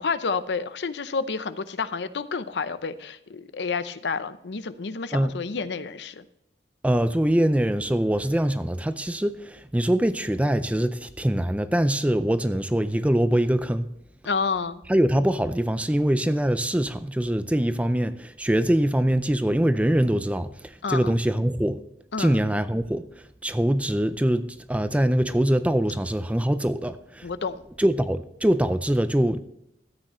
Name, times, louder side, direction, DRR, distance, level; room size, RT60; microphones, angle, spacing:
voice 1, 0.0-6.2 14.2-14.8 20.8-21.1 22.1-22.4 27.2-27.6, left 5 dB, 75° left, 0.6 m, -29 dB
voice 2, 6.8-13.9 14.9-21.8 22.2-27.3 27.8-29.4, right 1 dB, 10° right, 0.4 m, -23 dB
13.5 x 9.0 x 3.1 m
head